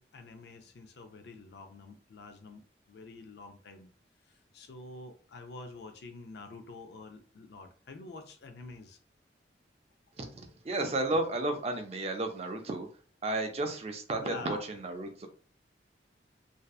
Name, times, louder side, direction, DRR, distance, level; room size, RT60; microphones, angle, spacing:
voice 1, 0.0-3.9 4.3-9.0 14.2-14.7, left 3 dB, 65° left, 0.4 m, -47 dB
voice 2, 10.2-12.9 13.2-15.3, right 2 dB, 35° right, 0.4 m, -33 dB
2.6 x 2.1 x 2.3 m
head